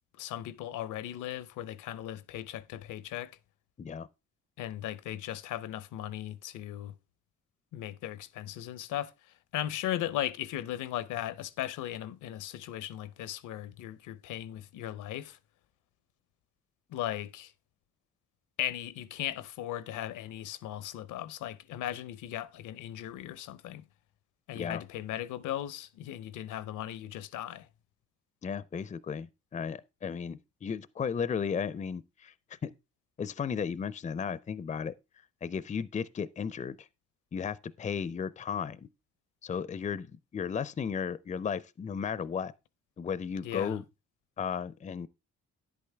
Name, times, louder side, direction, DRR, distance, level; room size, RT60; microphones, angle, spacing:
voice 1, 0.2-3.3 4.6-6.9 7.7-9.1 9.5-15.4 16.9-17.5 18.6-23.8 24.5-27.7 43.4-43.8, left 12 dB, 85° left, 0.8 m, -37 dB
voice 2, 28.4-32.7 33.2-34.9 35.4-36.9 37.3-38.9 39.4-42.5 43.0-43.8 44.4-45.1, left 6 dB, 25° left, 0.4 m, -35 dB
10.5 x 8.5 x 3.4 m
cardioid pair, 90°, 30 cm